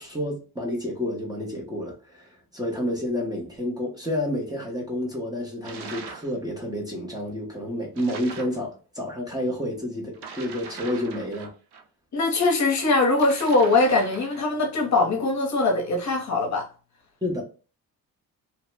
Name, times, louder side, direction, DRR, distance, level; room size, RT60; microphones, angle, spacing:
voice 1, 0.0-11.5 17.2-17.4, left 1 dB, 10° right, 0.7 m, -30 dB
sound 1, 5.6-6.3 7.9-8.6 10.1-11.8 13.1-14.5, right 5 dB, 90° right, 0.7 m, -41 dB
voice 2, 12.1-16.7, left 3 dB, 45° left, 0.7 m, -22 dB
2.9 x 2.0 x 3.3 m
cardioid pair, 160°, 38 cm